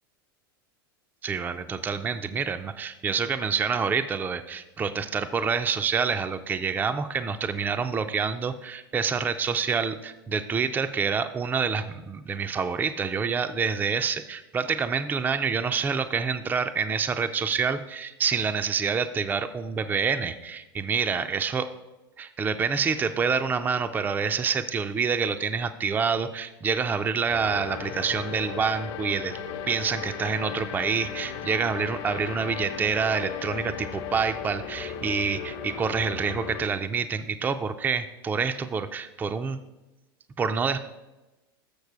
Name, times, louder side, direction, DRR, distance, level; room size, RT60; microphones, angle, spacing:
voice 1, 1.2-21.7 22.2-29.4 29.7-39.6 40.4-40.8, right 5 dB, 15° right, 9 dB, 0.3 m, -27 dB
sound 1, 27.3-36.7, left 7 dB, 50° left, 0.9 m, -36 dB
6.7 x 6.4 x 4.7 m, 1.0 s
hypercardioid pair, 105°, 13 cm